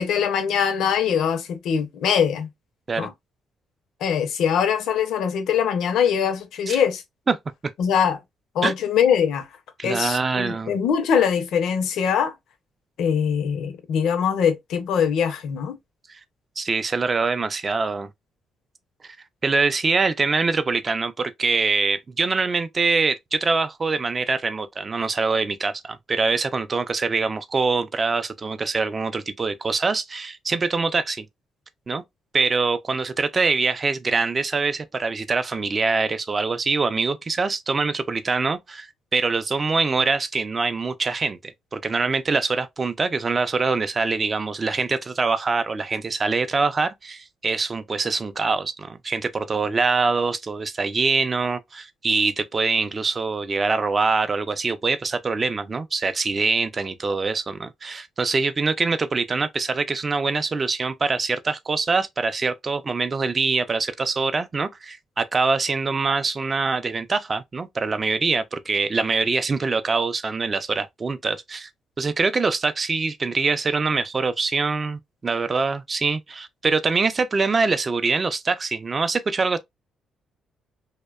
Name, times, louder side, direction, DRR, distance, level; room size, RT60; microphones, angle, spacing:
voice 1, 0.0-2.5 3.0-3.1 4.0-7.0 7.8-8.2 8.5-9.5 9.8-12.3 13.0-15.7, left 7 dB, 80° left, 0.5 m, -22 dB
voice 2, 9.8-10.7 16.1-16.2 16.6-18.1 19.0-19.2 19.4-31.3 31.9-32.0 32.3-71.7 72.0-79.6, right 4 dB, 35° right, 0.4 m, -24 dB
2.7 x 2.1 x 2.2 m
cardioid pair, 90°, 0 cm